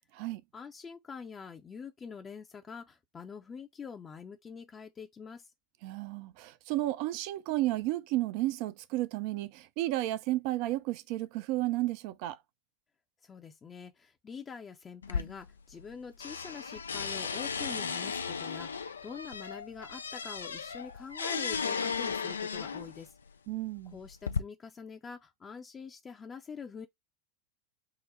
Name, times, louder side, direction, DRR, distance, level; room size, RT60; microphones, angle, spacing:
voice 1, 0.5-5.5 13.2-23.1 23.9-26.9, left 6 dB, 25° left, 0.6 m, -45 dB
voice 2, 5.8-12.4 23.5-23.9, right 16 dB, 50° right, 0.5 m, -32 dB
sound 1, 15.0-15.9 16.2-23.0 23.8-24.4, left 5 dB, 80° left, 0.4 m, -35 dB
3.7 x 2.0 x 4.2 m
figure-of-eight pair, 90°, 0 cm